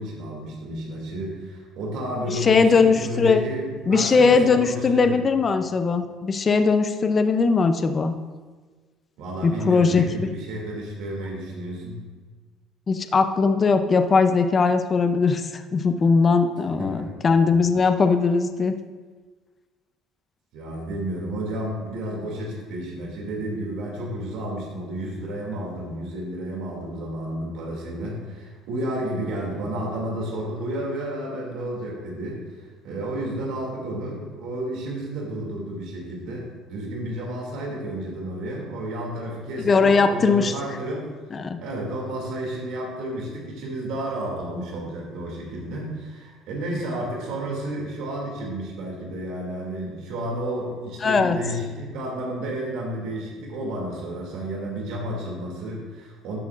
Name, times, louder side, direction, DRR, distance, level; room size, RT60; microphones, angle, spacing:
voice 1, 0.0-5.2 9.2-12.0 16.8-17.3 20.5-41.1 41.6-56.4, right 1 dB, 75° right, -2 dB, 2.4 m, -31 dB
voice 2, 2.3-3.4 3.9-8.2 9.4-10.3 12.9-18.7 39.6-40.5 41.3-41.6 51.0-51.4, left 4 dB, 30° left, 8 dB, 0.5 m, -20 dB
12.5 x 7.7 x 2.5 m, 1.4 s
cardioid pair, 135°, 0 cm